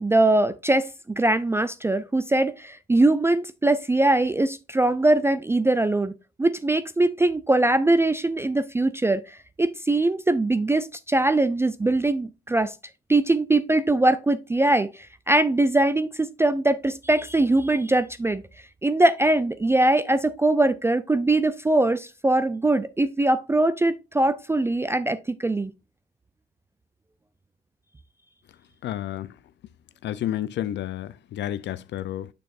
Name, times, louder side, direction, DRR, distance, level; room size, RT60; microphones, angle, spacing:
voice 1, 0.0-12.7 13.1-18.4 18.8-25.7, right 2 dB, 15° right, 0.3 m, -22 dB
voice 2, 28.8-29.3 30.0-32.3, left 12 dB, 65° left, 0.4 m, -30 dB
6.6 x 6.2 x 2.4 m
cardioid pair, 90°, 20 cm